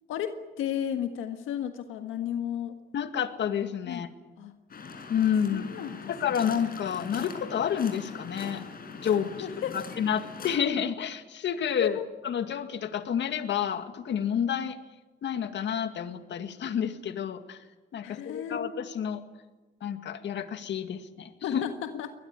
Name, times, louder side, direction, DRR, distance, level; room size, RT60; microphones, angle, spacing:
voice 1, 0.1-2.8 3.9-4.0 4.4-4.5 5.5-6.0 9.4-9.8 11.8-12.1 18.0-18.6 21.4-22.1, left 9 dB, 90° left, 7 dB, 1.6 m, -33 dB
voice 2, 2.9-4.1 5.1-5.7 6.1-8.6 9.0-9.3 10.0-12.0 12.2-14.8 15.2-17.6 17.9-19.2 19.8-21.6, left 8 dB, 65° left, 8 dB, 2.1 m, -29 dB
Waves surf, 4.7-10.6, left 4 dB, 50° left, 6.0 m, -42 dB
23.0 x 20.0 x 9.9 m, 1.2 s
cardioid pair, 90°, 20 cm